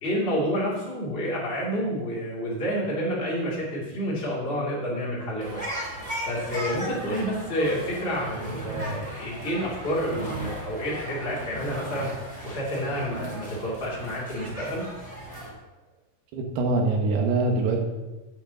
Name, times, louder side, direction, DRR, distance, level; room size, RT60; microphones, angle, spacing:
voice 1, 0.0-5.6 6.3-12.1 12.4-14.8, equal, 20° left, -7 dB, 1.8 m, -29 dB
sound 1, 5.4-15.5, right 1 dB, 10° right, 2.1 m, -36 dB
voice 2, 16.3-17.8, right 3 dB, 85° right, 2 dB, 3.4 m, -24 dB
8.1 x 6.8 x 6.9 m, 1.1 s
omnidirectional pair, 4.5 m